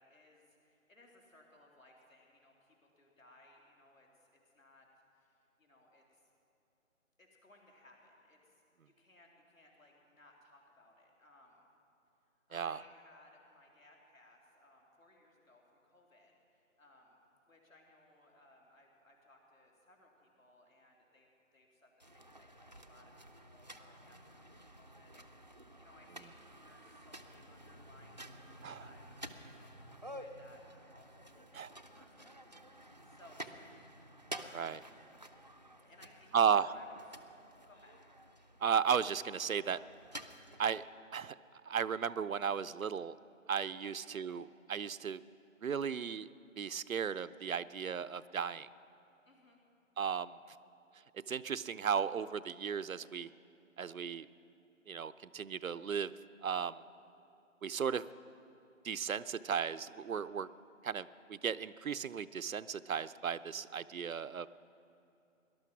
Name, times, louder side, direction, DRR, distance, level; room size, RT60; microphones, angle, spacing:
voice 1, 0.0-4.9 5.1-6.2 7.2-8.6 8.9-11.7 12.5-17.2 17.5-23.1 23.4-26.4 26.6-32.4 33.0-34.7 35.8-37.2 37.7-37.9 43.8-43.9 49.3-49.6, left 1 dB, 75° left, -1 dB, 3.6 m, -63 dB
sound 1, 22.0-40.8, right 1 dB, 35° right, 0.5 m, -52 dB
voice 2, 36.3-36.7 38.6-39.8 40.6-40.8 41.1-41.3 41.7-43.2 43.5-45.2 45.6-46.3 46.6-48.7 50.0-50.4 51.3-53.3 53.8-54.3 54.9-56.1 56.4-56.8 57.6-58.0 58.8-60.5 60.8-64.5, right 7 dB, 80° right, 16 dB, 0.6 m, -35 dB
18.5 x 11.5 x 6.0 m, 2.7 s
figure-of-eight pair, 155°, 41 cm